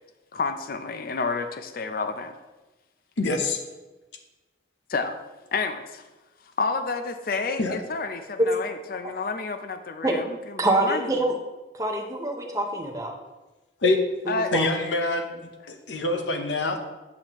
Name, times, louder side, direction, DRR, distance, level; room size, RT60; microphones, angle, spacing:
voice 1, 0.3-2.3 4.9-5.2 5.5-6.0 6.6-11.1 14.3-14.5, left 4 dB, 50° left, 8 dB, 0.5 m, -30 dB
voice 2, 3.2-3.6 7.6-7.8 13.8-14.0 14.5-15.4 15.7-16.8, left 2 dB, 70° left, 4 dB, 0.8 m, -25 dB
voice 3, 10.6-11.3 11.7-13.1 14.3-14.7, right 2 dB, 15° right, 3 dB, 0.7 m, -25 dB
8.6 x 5.9 x 3.0 m, 1.1 s
head